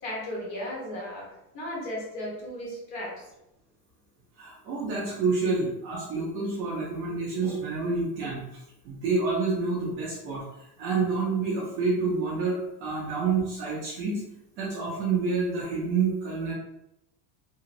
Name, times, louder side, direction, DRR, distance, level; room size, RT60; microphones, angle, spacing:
voice 1, 0.0-3.2, left 1 dB, 40° left, -4 dB, 1.2 m, -35 dB
voice 2, 4.4-14.2 14.6-16.5, right 4 dB, 30° right, -5 dB, 0.4 m, -28 dB
2.9 x 2.8 x 2.5 m, 0.85 s
cardioid pair, 175°, 44 cm